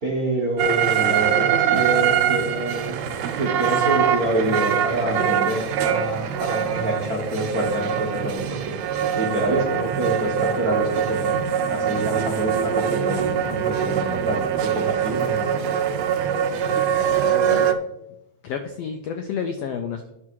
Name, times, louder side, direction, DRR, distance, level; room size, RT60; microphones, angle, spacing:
voice 1, 0.0-3.0 3.3-15.5, right 1 dB, 45° right, -2 dB, 1.2 m, -26 dB
sound 1, 0.6-17.7, right 9 dB, 75° right, 1.6 m, -23 dB
voice 2, 17.0-17.8 18.4-20.1, left 7 dB, 90° left, 7 dB, 1.4 m, -31 dB
9.7 x 6.3 x 4.6 m, 0.87 s
omnidirectional pair, 3.6 m